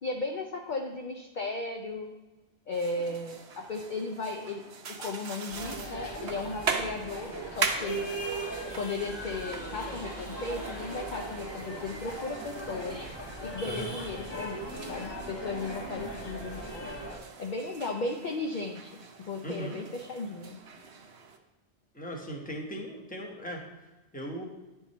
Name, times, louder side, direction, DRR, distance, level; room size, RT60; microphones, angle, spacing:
voice 1, 0.0-2.1 2.7-4.6 5.0-8.1 8.8-13.0 13.4-16.9 17.4-20.6, left 3 dB, 50° left, 2 dB, 0.6 m, -36 dB
sound 1, 2.7-21.4, right 5 dB, 75° right, 1.0 m, -41 dB
sound 2, 5.5-17.2, right 1 dB, 25° left, 1.2 m, -39 dB
voice 2, 13.6-14.0 19.4-19.8 21.9-24.4, right 1 dB, 10° left, -1 dB, 1.0 m, -39 dB
10.0 x 3.6 x 4.1 m, 1.1 s
omnidirectional pair, 1.1 m